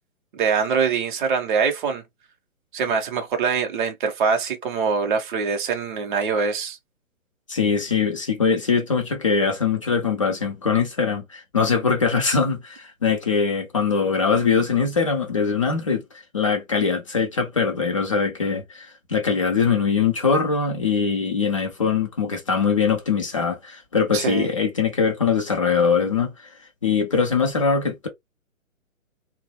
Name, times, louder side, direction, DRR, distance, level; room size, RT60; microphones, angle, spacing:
voice 1, 0.3-2.0 2.7-6.8 24.1-24.5, right 5 dB, 35° right, 0.7 m, -23 dB
voice 2, 7.5-16.0 16.3-26.3 26.8-28.1, left 5 dB, 25° left, 0.4 m, -22 dB
2.5 x 2.0 x 2.9 m
hypercardioid pair, 145°, 41 cm